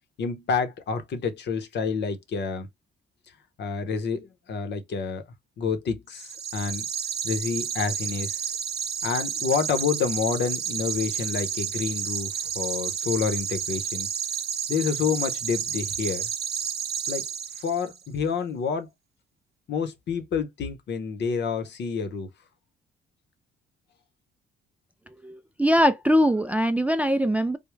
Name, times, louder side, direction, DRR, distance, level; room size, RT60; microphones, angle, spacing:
voice 1, 0.2-2.7 3.6-5.2 5.6-6.9 7.2-8.6 9.0-14.1 14.7-16.3 17.1-17.2 17.6-18.9 19.7-22.3, left 5 dB, 60° left, 0.9 m, -28 dB
sound 1, 6.1-18.0, right 7 dB, 55° right, 0.7 m, -31 dB
voice 2, 25.2-27.6, equal, 5° right, 0.3 m, -22 dB
3.5 x 2.2 x 3.1 m
cardioid pair, 90°, 20 cm